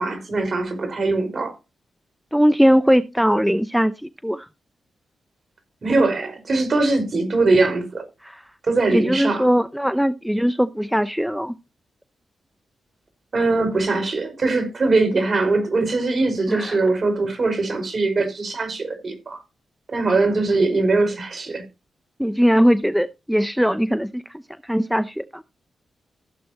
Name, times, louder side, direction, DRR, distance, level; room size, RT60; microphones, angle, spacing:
voice 1, 0.0-1.5 5.8-8.0 8.6-9.5 13.3-19.4 19.9-21.6, right 3 dB, 50° right, 5.0 m, -21 dB
voice 2, 2.3-4.5 8.2-8.4 8.9-11.5 16.5-16.8 22.2-24.2 24.6-25.4, equal, ahead, 0.7 m, -20 dB
15.5 x 7.6 x 2.9 m
cardioid pair, 55°, 0 cm